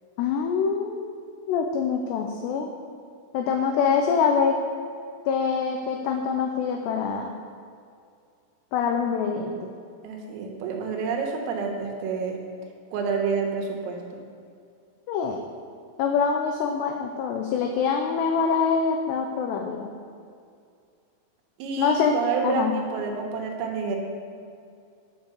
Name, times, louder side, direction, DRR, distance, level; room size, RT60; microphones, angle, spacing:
voice 1, 0.2-1.2 1.5-2.7 3.3-4.6 5.3-7.3 8.7-9.6 15.1-15.4 16.0-19.9 21.8-22.2 22.4-22.7, left 6 dB, 90° left, 3 dB, 2.4 m, -25 dB
voice 2, 10.0-12.4 12.9-14.2 21.6-24.0, right 5 dB, 85° right, 2 dB, 4.0 m, -29 dB
9.5 x 7.6 x 7.0 m, 2.3 s
omnidirectional pair, 5.8 m